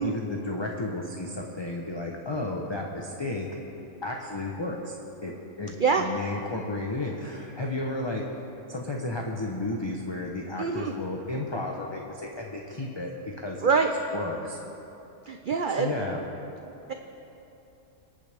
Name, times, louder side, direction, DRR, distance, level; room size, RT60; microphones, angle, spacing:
voice 1, 0.0-3.5 4.0-5.0 5.2-8.2 8.7-13.1 13.4-13.7 14.1-14.6 15.8-16.2, left 2 dB, 25° left, 0 dB, 0.7 m, -33 dB
voice 2, 5.8-6.1 10.6-10.9 13.6-13.9 15.3-15.9, right 5 dB, 55° right, 5 dB, 0.6 m, -25 dB
25.5 x 8.8 x 3.5 m, 2.9 s
omnidirectional pair, 1.5 m